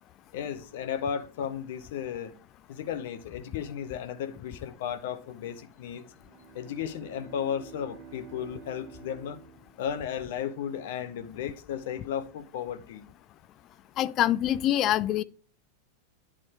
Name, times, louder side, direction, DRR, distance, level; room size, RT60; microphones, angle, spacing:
voice 1, 0.3-2.3 2.7-6.0 6.5-9.4 9.8-13.1, left 8 dB, 55° left, 0.8 m, -34 dB
Bowed string instrument, 6.0-10.4, right 7 dB, 30° right, 2.5 m, -50 dB
voice 2, 14.0-15.2, left 12 dB, 35° left, 0.3 m, -25 dB
9.7 x 3.7 x 4.6 m
figure-of-eight pair, 90°, 0 cm